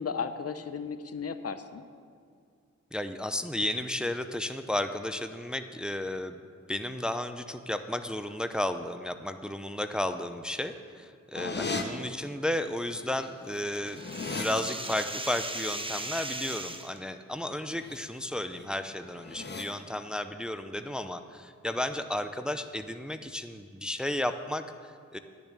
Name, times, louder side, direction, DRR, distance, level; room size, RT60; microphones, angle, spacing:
voice 1, 0.0-1.8 11.3-11.8, left 6 dB, 55° left, 11 dB, 0.7 m, -35 dB
voice 2, 2.9-6.4 6.7-14.0 14.3-25.2, left 1 dB, 5° right, 9 dB, 0.6 m, -33 dB
sound 1, 11.3-11.8 13.0-13.1 13.4-14.5 17.6-18.0 18.3-18.6 19.1-19.6, left 4 dB, 35° left, 1.1 m, -37 dB
sound 2, 13.2-17.0, right 2 dB, 20° right, 0.9 m, -38 dB
10.5 x 7.1 x 8.6 m, 2.2 s
cardioid pair, 65°, 29 cm